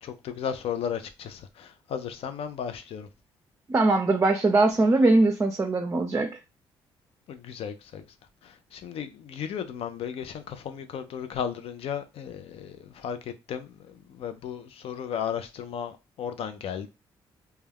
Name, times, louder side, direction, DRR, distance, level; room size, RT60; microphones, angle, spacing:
voice 1, 0.0-3.1 7.3-8.0 8.7-13.2 13.5-16.9, left 8 dB, 65° left, 0.5 m, -35 dB
voice 2, 3.7-6.3, right 2 dB, 25° right, 0.5 m, -21 dB
2.2 x 2.2 x 3.4 m
supercardioid pair, 60°, 11 cm